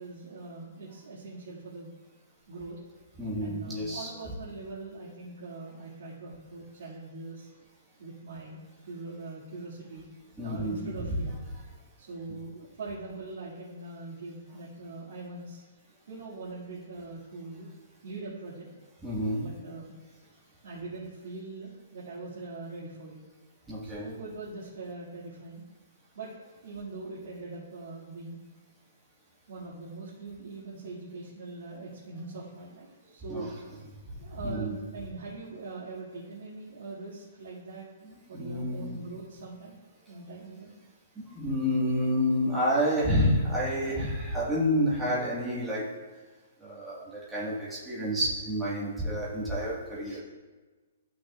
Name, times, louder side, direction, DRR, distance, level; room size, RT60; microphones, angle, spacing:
voice 1, 0.0-1.9 2.5-2.8 3.4-7.5 8.0-10.0 10.4-11.4 12.0-15.6 16.1-17.7 18.0-18.7 19.4-19.9 20.6-23.2 23.8-25.6 26.2-26.3 26.6-28.4 29.5-33.5 34.2-37.9 38.3-39.8 40.1-40.7, right 3 dB, 65° right, -9 dB, 2.3 m, -42 dB
voice 2, 3.2-4.1 10.4-11.2 19.0-19.4 23.7-24.1 33.3-33.5 34.3-34.8 38.3-39.0 39.4-39.5 41.1-45.8 46.6-50.2, equal, 5° right, -8 dB, 1.6 m, -29 dB
14.0 x 5.9 x 2.4 m, 1.3 s
hypercardioid pair, 175°, 0 cm